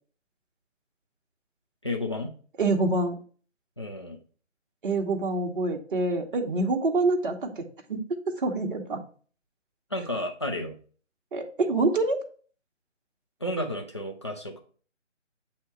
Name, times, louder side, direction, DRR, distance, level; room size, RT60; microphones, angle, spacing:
voice 1, 1.8-2.3 3.8-4.2 9.9-10.7 13.4-14.6, left 1 dB, 25° left, 2 dB, 0.4 m, -32 dB
voice 2, 2.6-3.2 4.8-9.0 11.3-12.2, right 3 dB, 45° right, 2 dB, 1.0 m, -26 dB
8.0 x 2.8 x 4.5 m, 0.42 s
figure-of-eight pair, 150°, 37 cm